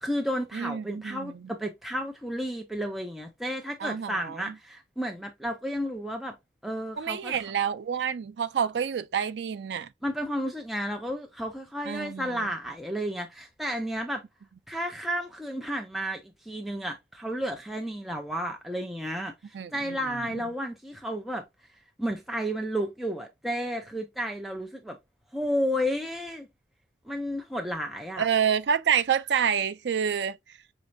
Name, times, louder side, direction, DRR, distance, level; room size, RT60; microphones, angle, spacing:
voice 1, 0.0-6.4 6.6-7.4 10.0-14.2 14.7-21.4 22.0-25.0 25.3-26.5 27.1-28.3, equal, ahead, 0.4 m, -32 dB
voice 2, 0.5-1.5 3.8-4.5 7.0-9.9 11.9-12.5 19.5-20.4 28.2-30.4, right 7 dB, 70° right, 0.4 m, -28 dB
5.8 x 3.2 x 2.6 m
head